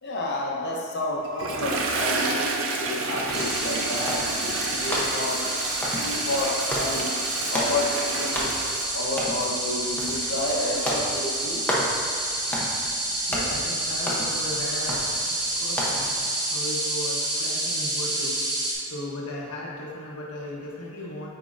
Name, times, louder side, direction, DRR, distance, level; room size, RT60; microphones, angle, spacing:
voice 1, 0.0-5.4 6.0-7.1 7.5-8.6 8.9-11.6 12.4-12.7, left 2 dB, 50° left, -2 dB, 0.9 m, -30 dB
Toilet flush, 1.2-11.8, right 3 dB, 65° right, 0.6 m, -31 dB
sound 1, 3.2-16.2, equal, 10° left, 0.8 m, -34 dB
sound 2, 3.3-18.7, right 1 dB, 15° right, 1.0 m, -29 dB
voice 2, 13.1-15.0 15.3-16.1 16.5-18.4 18.7-21.3, left 1 dB, 80° left, -4 dB, 1.1 m, -36 dB
9.0 x 4.5 x 2.6 m, 2.3 s
head